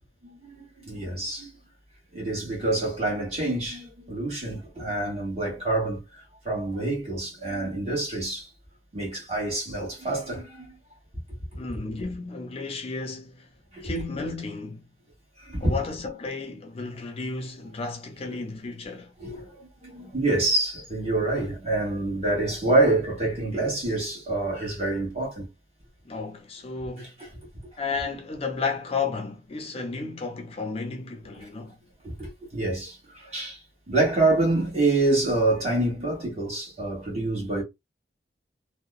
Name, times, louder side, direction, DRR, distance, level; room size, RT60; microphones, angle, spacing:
voice 1, 0.2-1.5 2.1-8.5 8.9-10.8 13.7-13.9 15.4-15.7 19.2-25.5 27.0-27.3 31.4-31.5 32.0-33.6 33.9-37.6, right 2 dB, 35° right, 1.4 m, -27 dB
voice 2, 11.6-13.5 13.8-14.8 15.6-19.1 26.1-27.2 27.8-31.8, left 4 dB, 35° left, 0.5 m, -33 dB
2.8 x 2.1 x 2.3 m
head